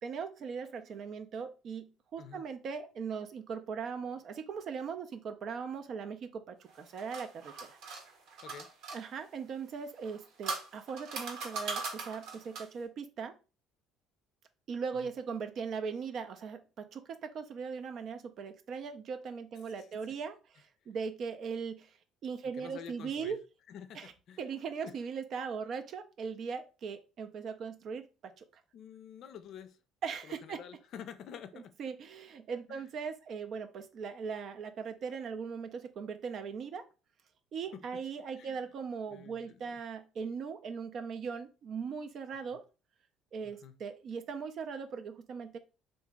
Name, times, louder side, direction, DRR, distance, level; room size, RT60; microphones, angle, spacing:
voice 1, 0.0-7.8 8.9-13.3 14.7-22.0 22.2-23.4 23.9-24.1 24.4-28.4 30.0-30.6 31.5-36.8 37.5-42.6 43.3-45.6, right 6 dB, 55° right, 8 dB, 0.4 m, -39 dB
sound 1, 6.7-9.0 10.0-12.8, right 4 dB, 75° right, 1.0 m, -40 dB
voice 2, 22.5-23.4 23.7-24.4 24.8-25.0 28.7-29.8 30.2-31.8 32.7-32.9 37.7-37.8 38.4-38.6 39.1-39.8 42.5-42.6 43.4-43.8, left 8 dB, 60° left, 11 dB, 0.4 m, -49 dB
2.9 x 2.4 x 3.5 m, 0.32 s
supercardioid pair, 85°, 0 cm